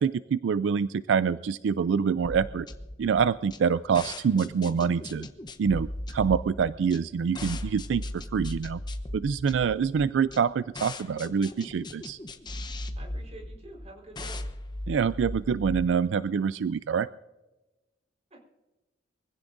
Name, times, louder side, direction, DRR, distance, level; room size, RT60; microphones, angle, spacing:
voice 1, 0.0-2.7 3.0-5.3 5.6-8.0 8.3-8.8 9.1-12.2 14.9-17.1, right 6 dB, 85° right, 15 dB, 0.4 m, -26 dB
sound 1, 2.2-15.8, left 1 dB, 25° left, 0.9 m, -38 dB
voice 2, 12.9-14.4 18.3-18.4, right 2 dB, 40° right, 0 dB, 4.3 m, -47 dB
24.0 x 16.0 x 2.6 m, 1.1 s
head